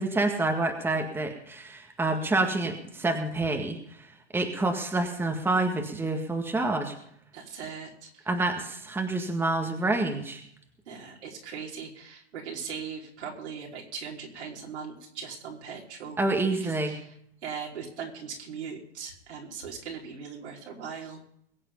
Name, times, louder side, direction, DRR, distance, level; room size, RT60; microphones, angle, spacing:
voice 1, 0.0-4.1 4.3-6.9 8.3-10.4 16.2-16.9, right 2 dB, 5° right, 3 dB, 1.8 m, -28 dB
voice 2, 7.3-8.3 10.9-16.2 16.6-17.1 17.4-21.2, right 6 dB, 75° right, -1 dB, 4.9 m, -39 dB
22.0 x 8.3 x 5.4 m, 0.67 s
hypercardioid pair, 125°, 34 cm